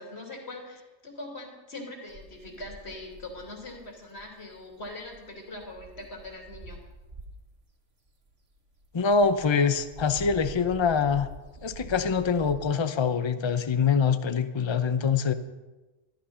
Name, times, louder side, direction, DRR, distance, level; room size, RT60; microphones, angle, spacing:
voice 1, 0.0-6.8, left 2 dB, 55° left, 0 dB, 3.2 m, -42 dB
sound 1, 2.1-7.6 8.1-12.6, right 1 dB, 65° right, 2.0 m, -47 dB
voice 2, 8.9-11.3 11.6-15.3, left 5 dB, 30° left, 10 dB, 0.6 m, -24 dB
14.5 x 13.0 x 5.7 m, 1.1 s
omnidirectional pair, 1.4 m